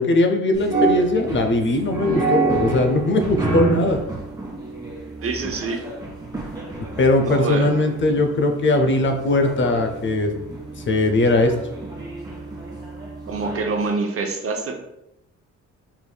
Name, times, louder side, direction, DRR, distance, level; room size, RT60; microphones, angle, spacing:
voice 1, 0.0-4.0 7.0-10.3 10.9-11.5, left 2 dB, 40° left, 5 dB, 0.6 m, -19 dB
sound 1, 0.5-13.8, right 4 dB, 15° right, 1.4 m, -28 dB
voice 2, 5.2-5.8 7.2-7.8 13.3-14.8, right 3 dB, 50° right, 4 dB, 0.7 m, -25 dB
4.6 x 3.5 x 2.3 m, 0.85 s
cardioid pair, 90°, 30 cm